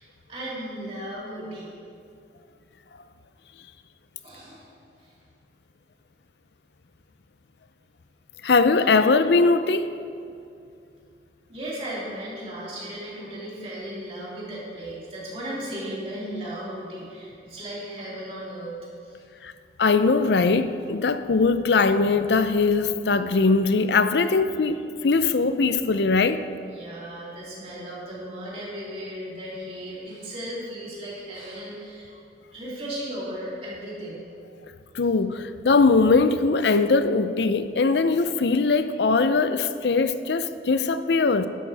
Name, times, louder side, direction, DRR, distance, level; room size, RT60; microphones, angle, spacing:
voice 1, 0.0-1.7 4.2-4.7 5.0-5.1 11.5-18.7 19.0-19.2 26.7-32.1 32.5-34.3, right 1 dB, 35° right, -7 dB, 3.0 m, -36 dB
voice 2, 8.4-9.9 19.4-19.5 19.8-26.4 34.9-41.5, left 4 dB, 80° left, 11 dB, 0.5 m, -21 dB
12.0 x 11.5 x 3.4 m, 2.5 s
head